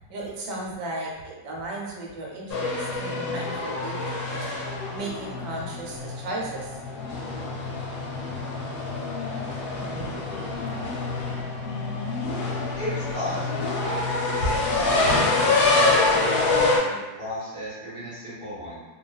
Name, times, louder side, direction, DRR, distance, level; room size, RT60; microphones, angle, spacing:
voice 1, 0.1-4.5 4.9-6.8 9.7-10.7 15.0-15.5, right 2 dB, 85° right, -2 dB, 1.3 m, -36 dB
sound 1, 2.5-16.8, left 3 dB, 75° left, 1.1 m, -26 dB
voice 2, 12.8-18.8, left 1 dB, 35° left, -11 dB, 0.5 m, -35 dB
2.8 x 2.3 x 2.2 m, 1.2 s
omnidirectional pair, 1.8 m